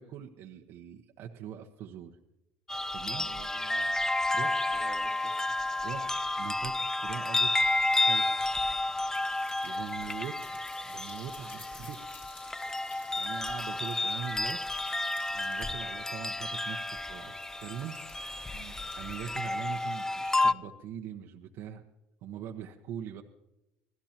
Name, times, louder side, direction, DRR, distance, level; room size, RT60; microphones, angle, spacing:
voice 1, 0.0-2.1 2.9-3.3 4.3-4.7 5.8-6.1 6.4-7.5 7.9-8.5 9.6-12.7 13.2-14.6 15.3-18.0 18.9-21.8 22.2-23.2, right 9 dB, 65° right, 3 dB, 1.1 m, -42 dB
sound 1, 2.7-20.5, left 2 dB, 10° left, 0.5 m, -31 dB
voice 2, 2.9-3.9 4.4-5.6 18.5-18.8, right 9 dB, 85° right, 5 dB, 1.6 m, -51 dB
sound 2, 9.1-19.2, left 3 dB, 40° left, 6.0 m, -53 dB
25.0 x 16.0 x 2.9 m, 0.95 s
supercardioid pair, 80°, 4 cm